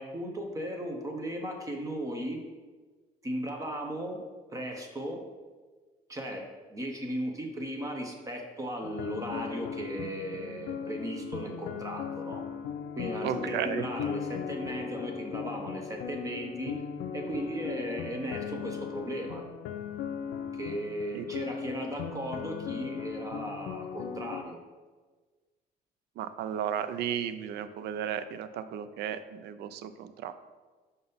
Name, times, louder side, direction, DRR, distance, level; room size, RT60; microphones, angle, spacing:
voice 1, 0.0-2.4 3.2-4.2 4.5-5.2 6.1-12.5 13.0-16.8 17.1-19.5 20.5-24.6, right 1 dB, 20° right, 2 dB, 0.7 m, -36 dB
sound 1, 8.8-24.4, left 7 dB, 90° left, 0.4 m, -38 dB
voice 2, 13.2-13.8 21.1-21.2 26.2-30.3, right 9 dB, 75° right, 12 dB, 0.4 m, -34 dB
5.4 x 3.9 x 5.4 m, 1.3 s
cardioid pair, 160°, 17 cm